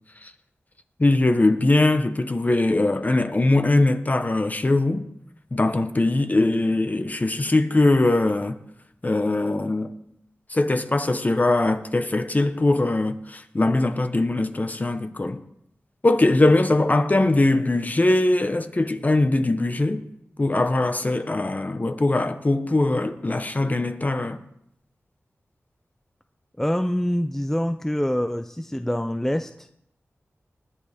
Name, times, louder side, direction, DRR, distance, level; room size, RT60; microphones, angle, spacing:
voice 1, 1.0-5.1 5.5-8.6 9.0-10.0 10.5-15.4 16.0-20.0 20.4-24.4, left 2 dB, 35° left, 1.1 m, -21 dB
voice 2, 26.6-29.7, equal, 5° left, 0.5 m, -25 dB
20.0 x 9.9 x 3.6 m
wide cardioid pair, 60°, 5 cm